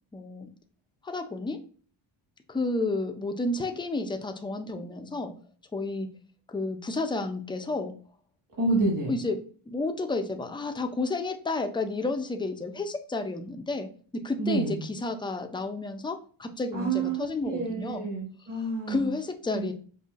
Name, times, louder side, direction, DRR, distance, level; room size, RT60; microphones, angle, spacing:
voice 1, 0.1-0.5 1.0-1.6 2.5-5.3 5.7-6.1 6.5-7.9 9.1-9.4 9.7-18.1 18.9-19.7, left 3 dB, 10° left, 6 dB, 0.3 m, -31 dB
voice 2, 8.6-9.1 14.4-14.8 16.7-19.1 19.5-19.7, right 3 dB, 40° right, -3 dB, 1.2 m, -29 dB
5.3 x 2.4 x 2.4 m, 0.43 s
cardioid pair, 105°, 50 cm